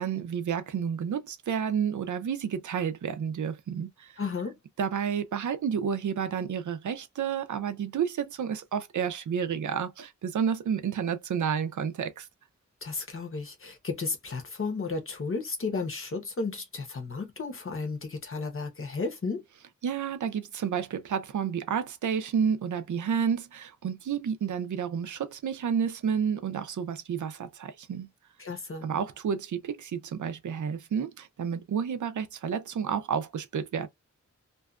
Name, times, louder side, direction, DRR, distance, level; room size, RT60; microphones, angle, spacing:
voice 1, 0.0-4.1 4.8-12.3 19.8-28.1 28.8-33.9, right 7 dB, 80° right, 0.5 m, -30 dB
voice 2, 4.2-4.6 12.8-19.4 28.4-28.9, left 4 dB, 45° left, 0.8 m, -33 dB
2.6 x 2.3 x 2.3 m
wide cardioid pair, 125°, 30 cm